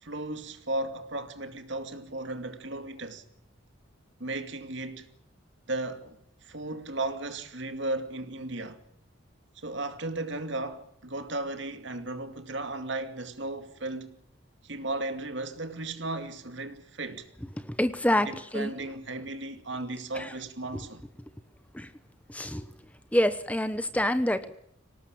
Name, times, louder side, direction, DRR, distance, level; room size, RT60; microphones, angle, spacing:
voice 1, 0.0-3.2 4.2-5.1 5.7-6.2 6.4-8.8 9.6-14.2 14.6-17.3 18.2-21.0, right 2 dB, 60° right, 2.5 m, -35 dB
voice 2, 17.6-18.7 20.1-20.3 20.7-20.8 21.7-21.9 22.3-22.7 23.1-24.5, left 1 dB, 5° left, 1.0 m, -27 dB
25.5 x 18.5 x 8.7 m
head